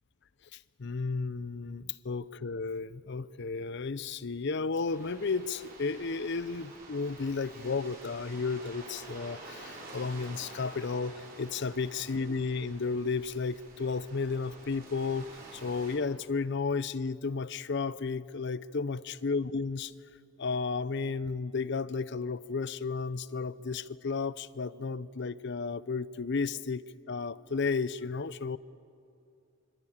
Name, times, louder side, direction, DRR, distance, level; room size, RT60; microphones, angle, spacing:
voice 1, 0.5-19.9 20.4-28.6, left 4 dB, 50° left, 0.6 m, -33 dB
sound 1, 4.9-16.0, right 2 dB, 45° right, 6.1 m, -49 dB
26.0 x 25.5 x 8.7 m
head